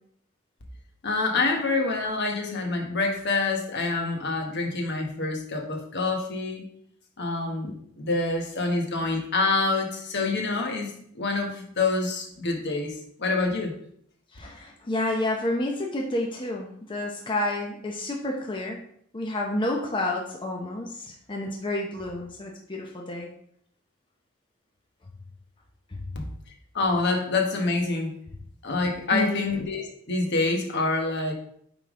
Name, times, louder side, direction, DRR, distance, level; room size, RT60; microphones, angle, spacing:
voice 1, 1.0-6.7 7.2-12.9 13.2-13.7 26.1-26.3 26.7-28.1 28.6-31.3, left 3 dB, 55° left, 2 dB, 1.2 m, -26 dB
voice 2, 14.3-18.8 19.1-23.3 25.9-26.0 29.1-29.5, left 1 dB, 25° left, 0 dB, 0.7 m, -30 dB
8.9 x 3.6 x 3.7 m, 0.68 s
head